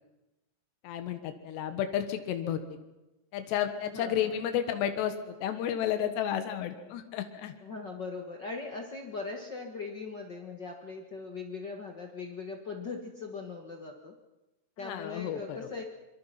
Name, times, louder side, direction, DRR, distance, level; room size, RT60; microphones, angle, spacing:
voice 1, 0.8-2.6 3.3-7.5 14.8-15.7, left 10 dB, 85° left, 8 dB, 3.6 m, -32 dB
voice 2, 3.9-4.4 7.6-14.1 14.8-15.8, left 4 dB, 65° left, 2 dB, 1.0 m, -40 dB
25.5 x 23.0 x 5.9 m, 1.0 s
omnidirectional pair, 4.8 m